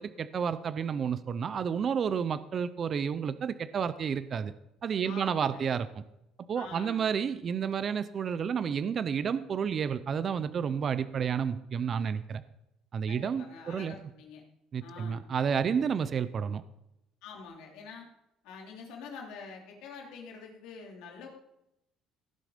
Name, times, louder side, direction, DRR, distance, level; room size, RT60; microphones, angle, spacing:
voice 1, 0.0-4.5 4.8-6.0 6.5-12.4 12.9-13.9 14.7-16.6, right 7 dB, 35° right, 14 dB, 0.5 m, -31 dB
voice 2, 5.0-5.6 6.5-7.0 13.1-14.4 14.8-15.2 17.2-18.1 18.4-21.3, left 5 dB, 80° left, 0 dB, 3.3 m, -46 dB
17.0 x 7.6 x 5.1 m, 0.85 s
cardioid pair, 160°, 0 cm